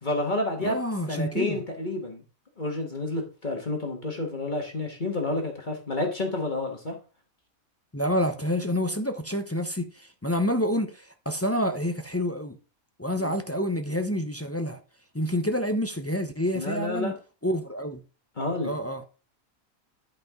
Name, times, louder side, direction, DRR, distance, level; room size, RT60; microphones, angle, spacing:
voice 1, 0.0-0.8 1.1-2.2 2.6-7.0 13.2-13.4 16.5-17.1 18.4-18.7, left 2 dB, 35° left, 1.6 m, -29 dB
voice 2, 0.6-1.6 7.9-12.6 13.0-14.8 15.1-17.1 17.4-18.0 18.6-19.0, equal, 15° left, 0.5 m, -28 dB
12.0 x 5.3 x 3.6 m
omnidirectional pair, 1.5 m